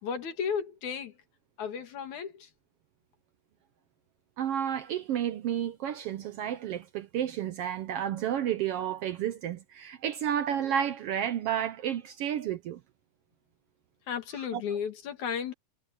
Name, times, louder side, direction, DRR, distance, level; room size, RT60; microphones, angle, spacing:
voice 1, 0.0-1.2 1.6-2.5 14.1-15.5, left 7 dB, 75° left, 3.5 m, -34 dB
voice 2, 4.4-12.8 14.4-14.8, right 10 dB, 75° right, 1.4 m, -31 dB
omnidirectional pair, 3.4 m